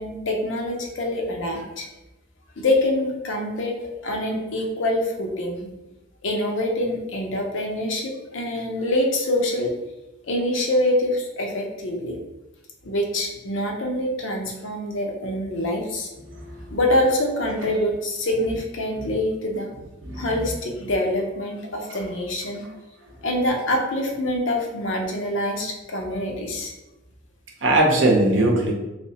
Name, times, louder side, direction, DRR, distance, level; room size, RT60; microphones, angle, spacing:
voice 1, 0.0-1.9 2.6-3.8 4.0-5.7 6.2-9.7 10.3-12.2 12.8-16.1 16.7-19.7 20.2-22.6 23.2-26.7, left 1 dB, 65° left, 1 dB, 0.6 m, -25 dB
voice 2, 16.3-16.7 19.0-19.1 20.0-20.5 21.9-22.0 27.6-28.7, right 1 dB, 65° right, 0 dB, 0.7 m, -21 dB
3.3 x 3.0 x 2.8 m, 1.0 s
head